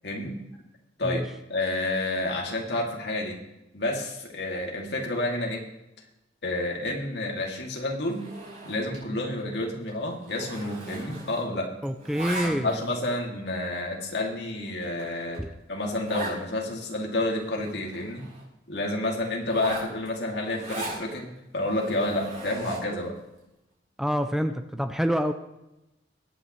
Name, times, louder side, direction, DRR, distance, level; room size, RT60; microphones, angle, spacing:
voice 1, 0.0-0.4 1.0-1.2 1.5-3.4 3.7-5.6 6.4-8.3 8.6-11.7 12.4-18.2 18.7-21.3 21.5-23.1, left 2 dB, 60° left, -1 dB, 2.6 m, -29 dB
Zipper (clothing), 8.1-9.1 9.4-9.6 9.9-11.6 11.8-12.9 13.5-13.6 14.2-14.3 14.7-14.8 15.0-15.1 15.3-15.4 16.0-16.4 16.8-16.9 17.1-18.4 19.4-21.0 21.6-23.0, right 2 dB, 45° right, 5.2 m, -38 dB
voice 2, 11.8-12.8 15.4-15.5 24.0-25.3, equal, ahead, 7 dB, 0.5 m, -27 dB
22.5 x 9.1 x 3.2 m, 0.92 s
head